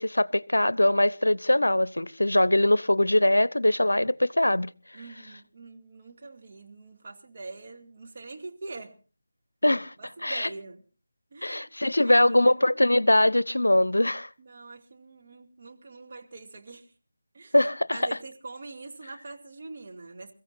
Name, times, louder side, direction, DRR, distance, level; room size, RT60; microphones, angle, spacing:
voice 1, 0.0-4.7 9.6-9.9 10.2-10.5 11.4-14.3 17.5-18.0, left 1 dB, 80° left, 0.6 m, -22 dB
voice 2, 4.9-8.9 10.0-10.8 11.3-11.7 12.0-12.5 14.4-16.9 17.3-17.5 17.9-20.3, right 3 dB, 40° right, 2.2 m, -44 dB
28.0 x 15.0 x 2.6 m
figure-of-eight pair, 160°, 0 cm